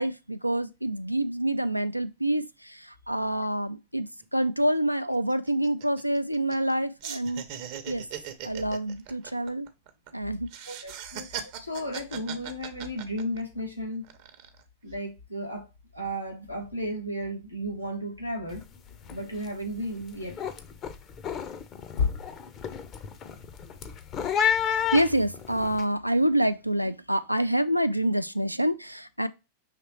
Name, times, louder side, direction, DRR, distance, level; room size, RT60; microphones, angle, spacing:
voice 1, 0.0-4.1 4.3-7.4 7.9-8.0 8.4-9.7 10.1-10.5 24.6-29.3, right 1 dB, 90° right, 0.3 m, -27 dB
sound 1, 4.2-4.3 4.6-4.8 5.1-6.7 7.0-10.1 10.5-13.6 14.0-14.6, right 9 dB, 45° right, 0.6 m, -39 dB
voice 2, 10.7-14.0 14.8-15.7 15.9-18.7 19.1-20.4, equal, 90° left, 1.0 m, -34 dB
sound 2, 16.4-19.8 20.9-26.8, left 6 dB, 70° left, 2.1 m, -39 dB
sound 3, 18.5-18.8 19.0-19.5 19.9-25.8, left 8 dB, 30° left, 0.6 m, -31 dB
5.7 x 3.1 x 2.9 m
figure-of-eight pair, 90°, 0 cm